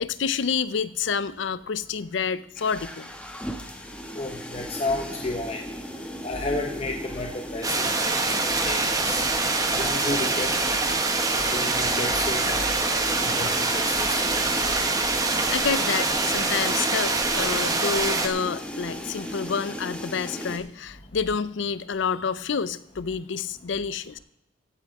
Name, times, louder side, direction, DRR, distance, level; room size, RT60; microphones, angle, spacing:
voice 1, 0.0-3.1 11.2-11.3 12.4-12.5 14.6-14.9 15.2-24.2, left 6 dB, 70° left, 16 dB, 0.5 m, -29 dB
sound 1, 2.6-20.6, equal, 5° left, 0.9 m, -37 dB
voice 2, 4.2-5.6 6.2-7.9 8.6-9.2 9.7-10.5 11.5-12.6 13.3-14.1, left 2 dB, 30° left, 2 dB, 0.9 m, -31 dB
sound 2, 7.6-18.3, right 3 dB, 20° right, 1.0 m, -25 dB
15.5 x 9.0 x 3.6 m, 0.78 s
head